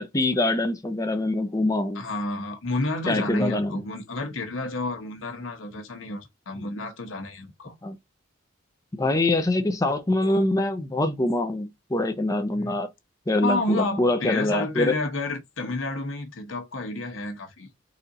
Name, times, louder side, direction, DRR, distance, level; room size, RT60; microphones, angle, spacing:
voice 1, 0.0-2.0 3.1-3.8 7.8-8.0 8.9-12.9 13.3-15.0, left 2 dB, 20° left, 0.6 m, -24 dB
voice 2, 1.9-7.7 10.2-10.5 12.5-12.8 13.4-17.7, left 2 dB, 80° left, 1.1 m, -30 dB
4.2 x 2.4 x 4.0 m
head